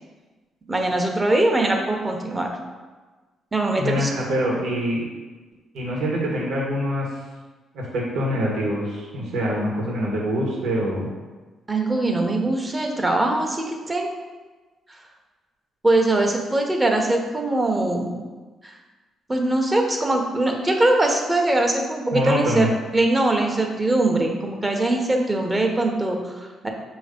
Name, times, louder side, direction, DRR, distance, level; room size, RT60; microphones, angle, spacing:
voice 1, 0.7-2.5 3.5-4.1 11.7-14.1 14.9-15.0 15.8-18.2 18.6-18.7 19.3-22.7 22.9-26.7, right 2 dB, 20° right, 2 dB, 1.0 m, -22 dB
voice 2, 3.8-5.0 5.7-7.1 7.7-11.1 22.1-22.7, equal, 80° right, -3 dB, 1.6 m, -24 dB
6.1 x 3.1 x 5.2 m, 1.3 s
cardioid pair, 90°, 0 cm